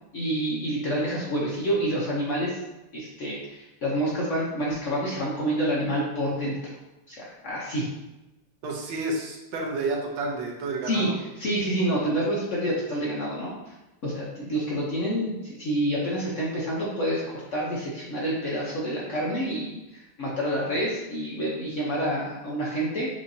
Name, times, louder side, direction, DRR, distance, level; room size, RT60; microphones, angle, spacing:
voice 1, 0.1-2.6 2.9-6.6 7.1-7.9 10.9-11.1 11.4-13.7 14.0-19.8 20.2-23.1, right 1 dB, 55° left, -5 dB, 0.9 m, -28 dB
voice 2, 8.6-11.1, right 2 dB, 85° right, 0 dB, 1.6 m, -30 dB
6.2 x 2.8 x 2.7 m, 0.98 s
omnidirectional pair, 2.1 m